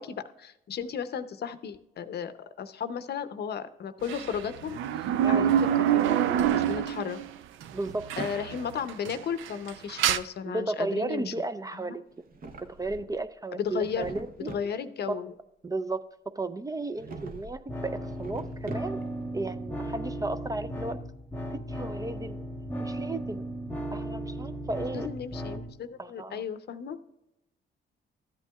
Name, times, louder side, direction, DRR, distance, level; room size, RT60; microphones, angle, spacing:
voice 1, 0.0-5.7 5.9-7.2 8.2-11.3 11.7-12.0 13.5-14.2 14.5-15.3 24.9-27.0, left 7 dB, 55° left, 11 dB, 0.7 m, -35 dB
sound 1, 4.1-7.3 7.6-7.7 8.1-8.6 8.9-10.2, right 10 dB, 80° right, 0.5 m, -25 dB
Drawer open or close, 6.0-7.0 7.4-8.5 12.1-13.2 13.6-14.7 16.9-17.6 18.0-19.2, right 3 dB, 45° right, 0.9 m, -43 dB
voice 2, 7.7-8.1 10.5-12.0 12.8-14.5 15.1-15.2 15.6-16.1 16.4-19.0 19.3-21.0 21.7-22.4 22.8-23.4 23.9-25.1 26.0-26.4, right 2 dB, 20° right, 10 dB, 0.4 m, -34 dB
sound 2, 17.7-25.7, right 1 dB, 10° left, 1.1 m, -36 dB
13.5 x 8.3 x 2.3 m, 0.87 s
cardioid pair, 90°, 20 cm